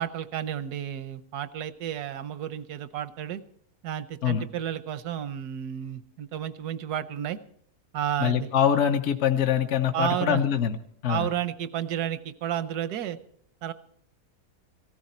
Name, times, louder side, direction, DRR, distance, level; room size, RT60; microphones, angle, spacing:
voice 1, 0.0-3.4 3.8-7.4 7.9-8.5 9.9-10.4 11.1-13.2 13.6-13.7, right 10 dB, 80° right, 13 dB, 1.3 m, -31 dB
voice 2, 8.2-10.8 11.0-11.3, left 9 dB, 55° left, 6 dB, 0.9 m, -24 dB
17.0 x 14.5 x 4.3 m, 0.66 s
omnidirectional pair, 1.7 m